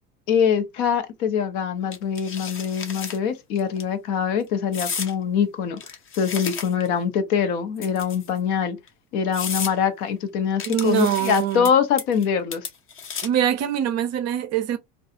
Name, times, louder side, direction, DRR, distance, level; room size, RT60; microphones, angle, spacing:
voice 1, 0.3-5.8 6.2-8.8 9.1-12.7, left 7 dB, 65° left, 0.9 m, -23 dB
sound 1, 1.9-3.2 3.6-3.8 4.7-5.1 5.8-6.9 7.8-8.4 8.9-9.0 9.3-9.7 10.6-11.7 12.0-12.3 12.5-13.5, left 6 dB, 25° left, 0.7 m, -33 dB
voice 2, 10.7-11.7 13.2-14.8, right 10 dB, 35° right, 0.5 m, -23 dB
2.4 x 2.3 x 2.7 m
hypercardioid pair, 90°, 47 cm